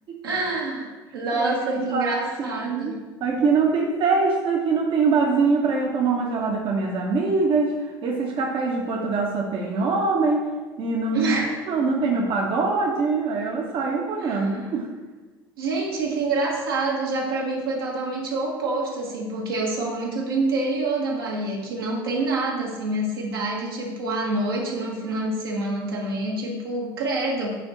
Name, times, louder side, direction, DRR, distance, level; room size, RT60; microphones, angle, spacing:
voice 1, 0.2-2.9 11.1-11.6 14.2-14.7 15.6-27.5, right 2 dB, 80° right, -3 dB, 1.5 m, -27 dB
voice 2, 1.3-2.9 3.2-10.5 10.8-11.3 11.7-14.9, right 4 dB, 45° right, 0 dB, 1.0 m, -23 dB
9.3 x 3.6 x 4.1 m, 1.3 s
figure-of-eight pair, 65°, 12 cm